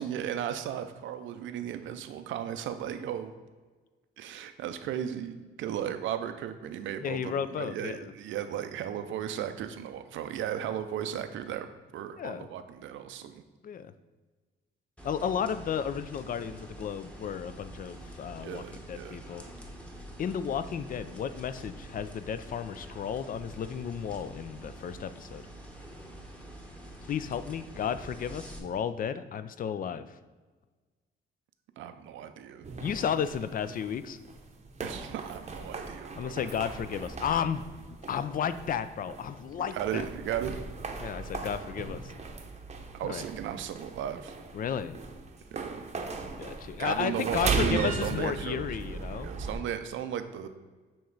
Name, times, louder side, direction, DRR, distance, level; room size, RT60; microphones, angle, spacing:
voice 1, 0.0-3.3 4.2-11.7 11.9-13.4 18.4-19.2 31.8-32.6 34.8-36.4 39.7-40.6 42.9-44.4 45.5-45.8 46.8-50.5, right 9 dB, 75° right, 9 dB, 0.5 m, -35 dB
voice 2, 7.0-8.1 12.2-12.5 13.6-13.9 15.0-19.4 20.2-25.4 27.1-30.1 32.8-34.2 36.2-37.6 38.1-40.0 41.0-42.1 43.0-43.2 44.5-45.0 46.4-49.3, left 8 dB, 45° left, 12 dB, 0.4 m, -33 dB
sound 1, 15.0-28.6, right 1 dB, 5° left, 1.0 m, -46 dB
sound 2, 32.6-49.6, right 4 dB, 35° right, 0.7 m, -38 dB
7.1 x 3.1 x 4.6 m, 1.3 s
cardioid pair, 90°, 20 cm